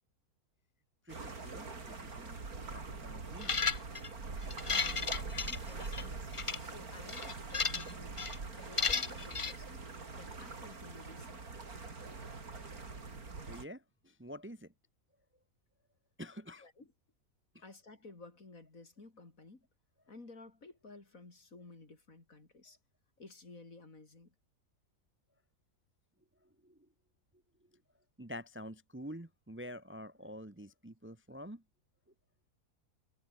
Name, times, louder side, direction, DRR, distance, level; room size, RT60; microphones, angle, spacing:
voice 1, 1.0-3.6 13.5-14.7 16.2-16.7 17.5-17.7 26.4-26.8 28.2-31.6, equal, 10° right, 1.2 m, -48 dB
sound 1, 1.1-13.6, right 4 dB, 70° right, 3.7 m, -44 dB
sound 2, 3.4-4.1 4.5-6.0 6.3-6.6 7.1-7.9 8.2-8.4 8.8-9.5, left 5 dB, 30° left, 0.6 m, -34 dB
voice 2, 4.6-6.1 6.6-8.2 8.5-9.9 10.1-11.4 16.6-16.9 17.6-19.6 20.1-22.8 23.2-24.3, left 3 dB, 60° left, 4.2 m, -54 dB
omnidirectional pair, 1.7 m